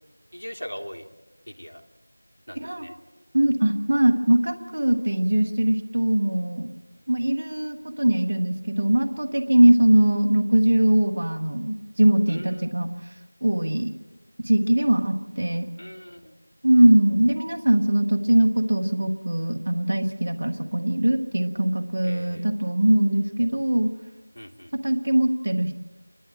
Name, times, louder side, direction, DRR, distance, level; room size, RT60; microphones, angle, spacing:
voice 1, 0.3-1.0 1.5-1.8 2.5-2.9 12.3-12.8 15.8-16.3 22.0-22.5 24.3-24.7, equal, 85° left, 3 dB, 2.9 m, -40 dB
voice 2, 2.6-2.9 3.3-6.7 7.1-12.9 13.4-13.9 14.4-15.6 16.6-23.9 24.8-25.7, right 1 dB, 20° right, 7 dB, 1.0 m, -21 dB
29.0 x 11.5 x 8.9 m, 1.2 s
figure-of-eight pair, 180°, 0 cm